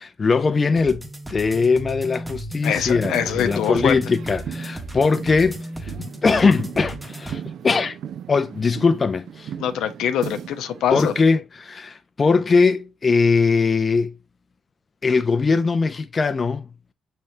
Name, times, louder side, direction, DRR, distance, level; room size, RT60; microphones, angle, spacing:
voice 1, 0.0-5.9 6.2-8.0 8.3-9.5 10.9-14.1 15.0-16.7, left 4 dB, 35° left, 0.4 m, -20 dB
sound 1, 0.8-7.4, right 1 dB, 10° right, 0.7 m, -35 dB
voice 2, 2.6-4.0 9.6-11.1, left 9 dB, 85° left, 0.5 m, -24 dB
sound 2, 3.0-11.3, right 9 dB, 70° right, 0.3 m, -37 dB
5.6 x 3.3 x 2.7 m
cardioid pair, 90°, 0 cm